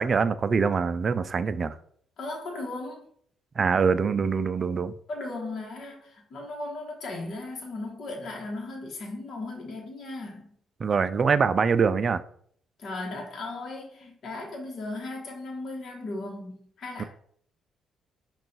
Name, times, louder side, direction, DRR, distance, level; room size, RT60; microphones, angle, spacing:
voice 1, 0.0-1.8 3.6-4.9 10.8-12.2 17.0-17.1, right 5 dB, 45° right, 13 dB, 0.3 m, -24 dB
voice 2, 2.2-3.0 5.1-10.5 12.8-17.0, left 2 dB, 60° left, -1 dB, 1.1 m, -36 dB
5.5 x 2.4 x 3.9 m, 0.63 s
cardioid pair, 90°, 0 cm